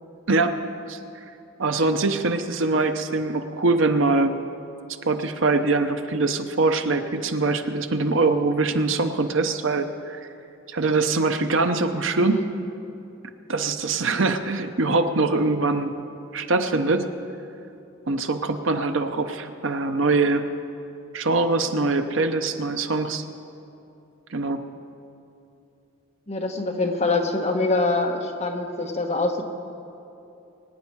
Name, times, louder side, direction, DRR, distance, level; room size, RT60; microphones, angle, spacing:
voice 1, 0.3-0.6 0.9-1.0 1.6-4.4 5.0-10.2 10.7-12.4 13.5-15.9 16.3-17.1 18.1-20.4 21.1-23.2 24.3-24.6, right 3 dB, 70° right, 8 dB, 0.8 m, -23 dB
voice 2, 26.3-29.4, left 3 dB, 30° left, 2 dB, 1.3 m, -24 dB
23.5 x 9.6 x 4.7 m, 2.8 s
head